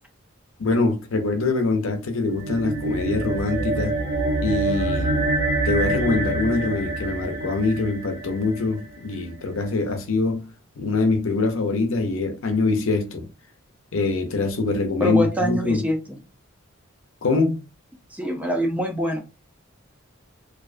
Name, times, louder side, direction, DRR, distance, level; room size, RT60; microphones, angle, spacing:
voice 1, 0.6-4.0 4.4-5.2 5.6-10.5 10.8-13.3 13.9-15.9 17.2-17.6, left 3 dB, 75° left, 0.6 m, -24 dB
sound 1, 2.2-8.9, right 2 dB, 80° right, 1.0 m, -26 dB
voice 2, 15.0-16.0 18.1-19.2, equal, 5° right, 0.4 m, -24 dB
2.5 x 2.2 x 2.4 m
head